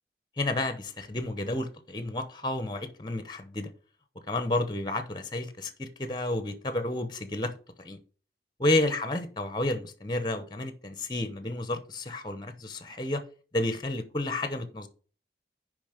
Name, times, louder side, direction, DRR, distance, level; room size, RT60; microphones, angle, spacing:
voice 1, 0.4-3.7 4.3-7.5 7.8-8.0 8.6-13.2 13.5-14.9, left 2 dB, 25° left, 0.9 m, -31 dB
7.2 x 5.1 x 6.5 m
head